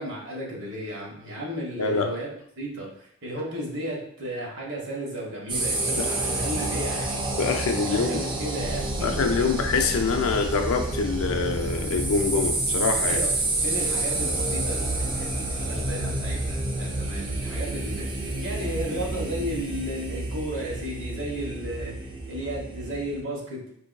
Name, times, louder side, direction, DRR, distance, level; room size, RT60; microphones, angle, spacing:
voice 1, 0.0-2.3 2.6-7.2 7.8-9.5 13.1-13.3 13.6-21.9 22.3-23.6, equal, 55° right, -3 dB, 1.1 m, -34 dB
voice 2, 1.8-2.1 6.0-6.1 7.4-8.1 9.0-13.2, left 4 dB, 65° left, 4 dB, 0.4 m, -25 dB
sound 1, 5.5-23.2, right 2 dB, 20° right, 0.4 m, -29 dB
sound 2, 8.6-20.5, equal, 45° left, 1.1 m, -40 dB
4.5 x 2.5 x 2.2 m, 0.68 s
head